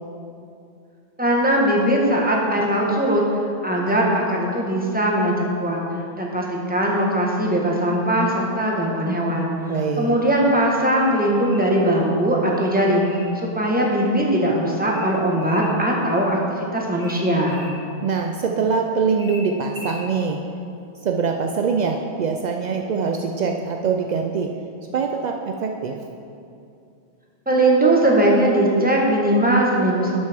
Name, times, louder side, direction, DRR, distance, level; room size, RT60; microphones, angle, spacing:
voice 1, 1.2-3.2 3.6-5.8 6.2-9.5 10.0-13.1 13.5-17.6 27.5-30.2, right 1 dB, 10° right, -2 dB, 1.1 m, -20 dB
voice 2, 9.7-10.2 18.0-20.4 21.0-24.5 24.9-25.9, right 5 dB, 75° right, 2 dB, 0.4 m, -23 dB
sound 1, 10.9-11.8 12.5-13.3 14.9-15.7 17.0-17.7 19.2-20.1, left 2 dB, 30° right, 1.8 m, -41 dB
11.5 x 6.5 x 3.5 m, 2.6 s
omnidirectional pair, 1.3 m